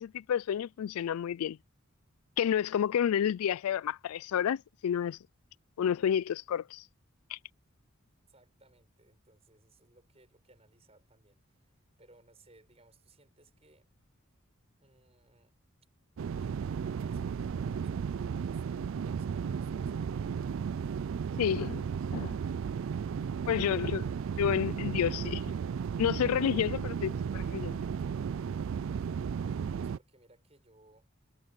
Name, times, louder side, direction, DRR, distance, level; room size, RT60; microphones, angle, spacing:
voice 1, 0.0-1.6 2.4-5.2 5.8-6.8 7.3-7.4 21.4-21.9 22.1-22.4 23.5-24.0 24.4-25.4 26.0-27.8, left 9 dB, 85° left, 0.3 m, -30 dB
voice 2, 8.3-13.9 14.8-15.5 16.3-20.4 23.3-24.0 29.4-31.1, right 2 dB, 30° right, 7.0 m, -63 dB
sound 1, 16.2-30.0, right 6 dB, 65° right, 0.3 m, -34 dB
head